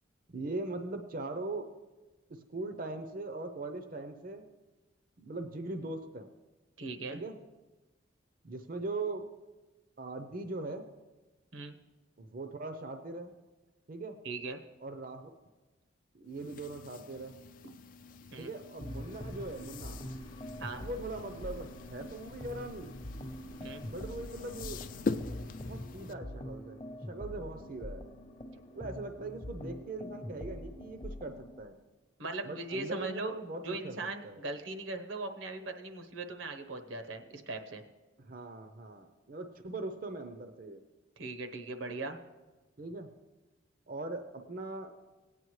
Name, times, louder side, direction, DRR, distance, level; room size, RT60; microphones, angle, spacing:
voice 1, 0.3-1.7 2.3-4.4 5.2-6.3 7.1-7.4 8.4-9.3 10.0-10.8 12.2-13.4 13.9-14.2 14.8-15.3 16.1-17.3 18.4-20.0 20.8-23.0 23.9-24.8 25.6-26.8 27.1-28.0 28.7-31.8 32.4-33.9 34.2-34.4 38.2-40.8 42.8-43.1 43.9-44.9, right 2 dB, 45° right, 6 dB, 0.6 m, -40 dB
voice 2, 6.8-7.2 11.5-11.7 14.2-14.6 18.3-18.5 20.6-20.8 23.6-23.8 32.2-33.3 33.6-37.8 41.2-42.2, right 3 dB, 85° right, 6 dB, 1.0 m, -39 dB
sound 1, 16.3-26.1, left 3 dB, 45° left, 0.3 m, -43 dB
sound 2, 18.8-31.6, equal, 30° left, 0.7 m, -44 dB
sound 3, 19.1-25.8, left 1 dB, 85° left, 0.8 m, -54 dB
17.5 x 9.2 x 3.2 m, 1.2 s
head